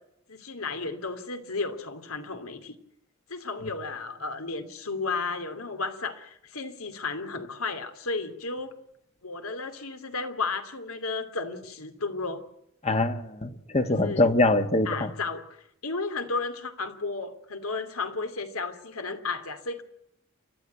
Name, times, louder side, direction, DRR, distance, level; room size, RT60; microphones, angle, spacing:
voice 1, 0.3-2.8 3.3-8.7 9.2-12.4 13.9-14.3 14.8-19.8, left 3 dB, 85° left, 8 dB, 2.7 m, -33 dB
voice 2, 12.8-15.1, left 2 dB, 30° left, 9 dB, 1.3 m, -24 dB
29.5 x 12.5 x 9.5 m, 0.76 s
head